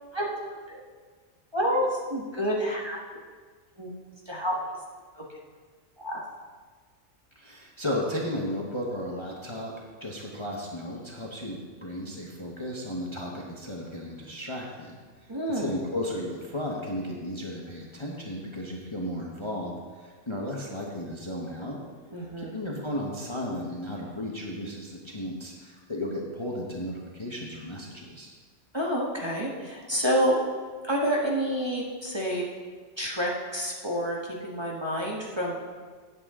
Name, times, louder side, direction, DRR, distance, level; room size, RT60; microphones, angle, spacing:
voice 1, 0.1-0.8 1.5-3.2 3.8-3.9 4.2-4.5 5.1-5.2 6.0-6.2 15.3-15.8 22.1-22.6 28.7-30.4 30.8-32.5 33.0-35.6, equal, 20° right, -4 dB, 1.4 m, -28 dB
voice 2, 7.4-9.7 10.0-15.0 15.6-19.7 20.0-21.8 22.4-28.3, left 1 dB, 20° left, -2 dB, 1.2 m, -34 dB
16.5 x 7.8 x 3.8 m, 1.5 s
omnidirectional pair, 1.5 m